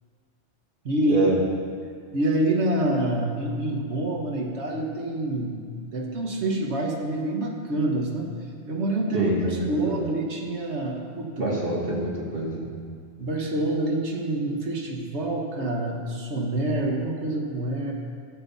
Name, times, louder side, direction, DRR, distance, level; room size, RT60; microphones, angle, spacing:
voice 1, 0.8-1.3 2.1-8.3 8.7-11.5 13.2-17.9, right 1 dB, 75° right, 0 dB, 1.6 m, -27 dB
voice 2, 9.1-10.0 11.4-12.7, right 1 dB, 55° right, -4 dB, 1.6 m, -26 dB
13.5 x 7.8 x 4.1 m, 2.1 s
omnidirectional pair, 1.1 m